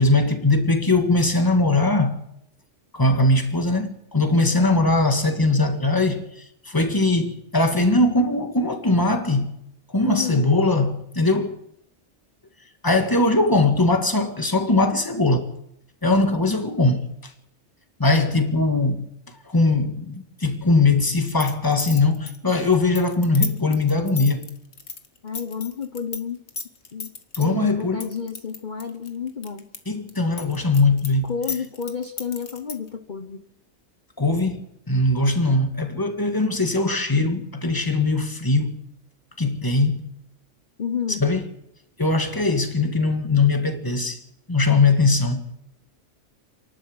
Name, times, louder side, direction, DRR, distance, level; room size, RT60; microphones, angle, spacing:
voice 1, 0.0-2.2 2.9-6.3 6.6-9.5 9.9-11.5 12.8-15.5 16.0-17.1 18.0-19.0 19.5-24.5 27.3-28.1 29.9-31.3 34.2-38.8 39.4-40.0 41.2-41.4 42.0-44.2 44.5-45.4, left 2 dB, 15° left, 1.9 m, -20 dB
voice 2, 10.1-10.5 25.2-26.4 26.9-27.1 27.4-29.6 31.3-33.4 40.8-41.2, left 7 dB, 40° left, 1.2 m, -30 dB
sound 1, 21.1-26.2 26.5-27.5 28.0-29.8 30.1-32.9, left 4 dB, 60° left, 1.8 m, -33 dB
28.5 x 11.5 x 7.9 m
omnidirectional pair, 1.3 m